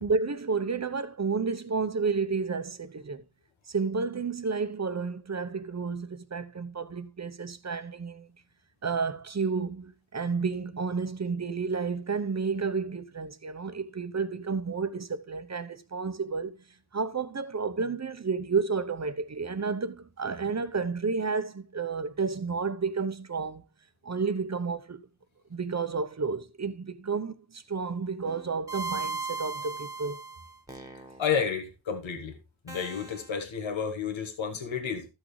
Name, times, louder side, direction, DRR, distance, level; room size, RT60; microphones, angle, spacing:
voice 1, 0.0-3.2 3.7-8.3 8.8-16.6 16.9-23.6 24.0-25.0 25.5-30.2, right 5 dB, 35° right, 0.9 m, -31 dB
sound 1, 28.3-31.3 32.7-33.3, right 4 dB, 10° right, 1.5 m, -37 dB
voice 2, 31.2-32.3 32.6-35.1, left 6 dB, 90° left, 1.4 m, -31 dB
13.5 x 6.3 x 3.3 m
wide cardioid pair, 85°, 45 cm